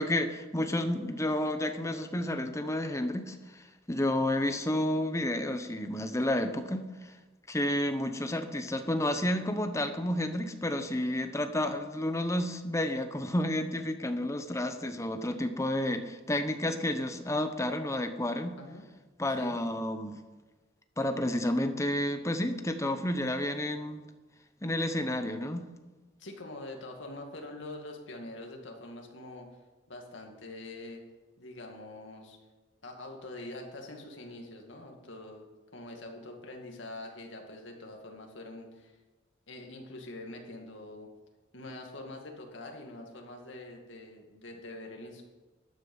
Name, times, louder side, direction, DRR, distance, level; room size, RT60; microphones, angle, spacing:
voice 1, 0.0-6.8 7.5-18.6 19.2-20.2 21.0-24.0 24.6-25.7, left 1 dB, 15° left, 8 dB, 0.9 m, -31 dB
voice 2, 26.2-29.5 29.9-31.0 31.4-32.4 32.8-35.5 35.7-39.0 39.5-41.1 41.5-45.2, left 2 dB, 70° left, 2 dB, 2.3 m, -44 dB
13.0 x 9.7 x 5.5 m, 1.2 s
head